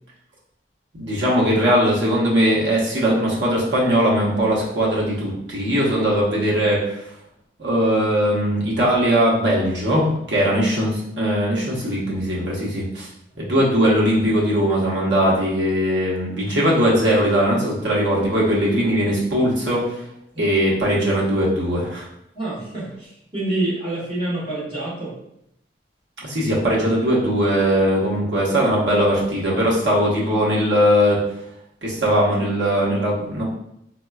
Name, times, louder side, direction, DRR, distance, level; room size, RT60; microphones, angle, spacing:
voice 1, 0.9-7.1 7.6-13.1 13.4-20.0 20.4-22.1 26.2-31.2 31.8-33.4, equal, 80° right, -5 dB, 0.9 m, -20 dB
voice 2, 22.3-25.2, right 2 dB, 25° right, -9 dB, 1.4 m, -27 dB
4.1 x 2.2 x 2.3 m, 0.78 s
head